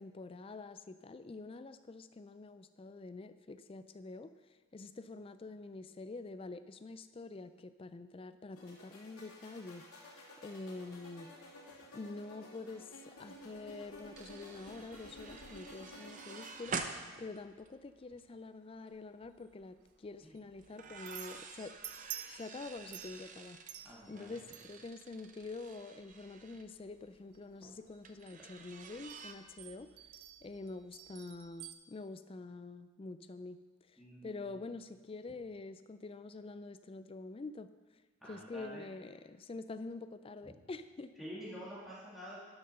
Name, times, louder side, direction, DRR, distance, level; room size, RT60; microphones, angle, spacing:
voice 1, 0.0-4.3 4.7-9.8 10.4-11.4 11.9-21.7 22.3-23.6 24.1-29.9 30.4-33.6 33.9-37.7 38.2-41.1, left 3 dB, 25° left, 12 dB, 0.3 m, -46 dB
sound 1, 8.5-16.5, left 1 dB, 75° left, 2.6 m, -53 dB
sound 2, 13.3-13.4 13.6-18.3 18.7-19.0 20.6-26.7 28.0-29.3, right 5 dB, 35° right, 0.6 m, -48 dB
sound 3, 19.2-31.7, right 11 dB, 90° right, 0.8 m, -52 dB
voice 2, 23.8-24.4 34.0-34.6 38.2-38.9 40.4-40.5 41.2-42.4, equal, ahead, -8 dB, 2.3 m, -48 dB
12.0 x 6.5 x 5.6 m, 1.4 s
head